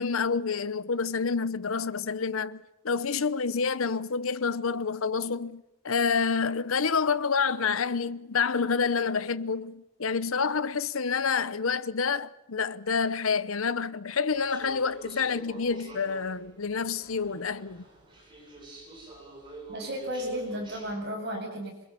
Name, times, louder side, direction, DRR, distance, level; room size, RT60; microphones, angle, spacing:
voice 1, 0.0-17.8, left 5 dB, 85° left, 0.8 m, -28 dB
sound 1, 14.3-20.9, right 2 dB, 25° right, 6.7 m, -47 dB
voice 2, 19.7-21.9, equal, 50° right, 7.7 m, -34 dB
26.0 x 23.0 x 7.0 m
head